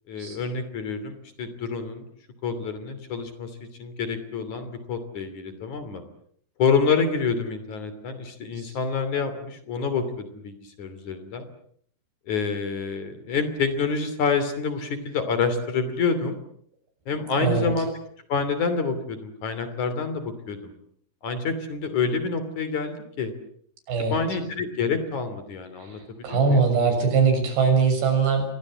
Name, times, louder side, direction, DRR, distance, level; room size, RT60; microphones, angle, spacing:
voice 1, 0.1-2.1 2.4-3.5 3.8-6.0 6.6-11.5 12.3-16.4 17.1-17.9 18.3-20.7 21.2-23.3 24.1-26.6, left 5 dB, 50° left, 11 dB, 4.0 m, -27 dB
voice 2, 26.2-28.5, right 5 dB, 90° right, 6 dB, 8.6 m, -21 dB
28.5 x 23.0 x 7.6 m, 0.65 s
omnidirectional pair, 4.7 m